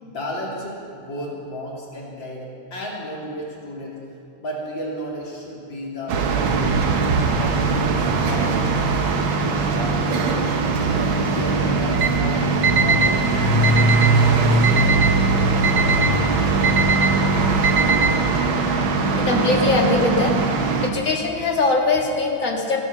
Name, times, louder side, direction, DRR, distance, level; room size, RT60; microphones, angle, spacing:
voice 1, 0.0-4.0 4.4-7.0 7.4-8.8 9.4-10.2 10.6-13.9 14.3-15.2, equal, 60° left, -5 dB, 3.6 m, -33 dB
sound 1, 6.1-20.9, right 3 dB, 70° right, 1.9 m, -20 dB
Alarm, 11.9-12.1 12.6-13.1 13.6-14.1 14.6-15.1 15.6-16.1 16.6-17.1 17.6-18.1, right 5 dB, 55° right, 1.0 m, -21 dB
voice 2, 19.2-20.4 20.8-22.8, left 3 dB, 40° left, 0 dB, 2.1 m, -21 dB
16.0 x 10.5 x 6.7 m, 2.6 s
omnidirectional pair, 2.3 m